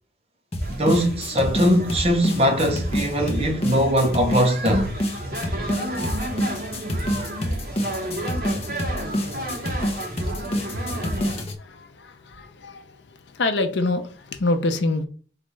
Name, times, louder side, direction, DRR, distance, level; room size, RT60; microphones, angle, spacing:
sound 1, 0.5-11.5, equal, 30° left, 0.6 m, -27 dB
sound 2, 0.6-11.4, right 1 dB, 50° right, 1.2 m, -32 dB
voice 1, 0.7-4.9, equal, 30° right, 0.7 m, -21 dB
voice 2, 11.6-15.1, left 2 dB, 70° left, 0.6 m, -26 dB
4.1 x 2.4 x 3.1 m
head